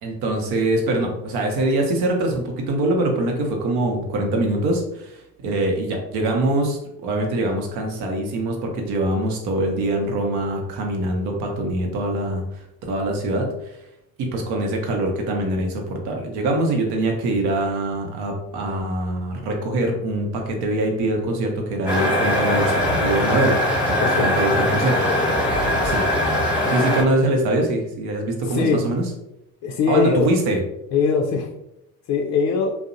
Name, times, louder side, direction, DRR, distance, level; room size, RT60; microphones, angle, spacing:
voice 1, 0.0-13.8 14.2-25.0 25.8-26.1 26.7-29.0 29.9-30.6, right 1 dB, 65° right, 2 dB, 0.8 m, -23 dB
sound 1, 21.9-27.0, left 1 dB, ahead, 1.1 m, -21 dB
voice 2, 24.0-24.3 26.7-26.8 28.4-28.8 29.6-30.3 30.9-31.5 32.1-32.8, left 5 dB, 40° left, 0 dB, 0.4 m, -21 dB
2.6 x 2.0 x 2.5 m, 0.84 s
hypercardioid pair, 70°, 43 cm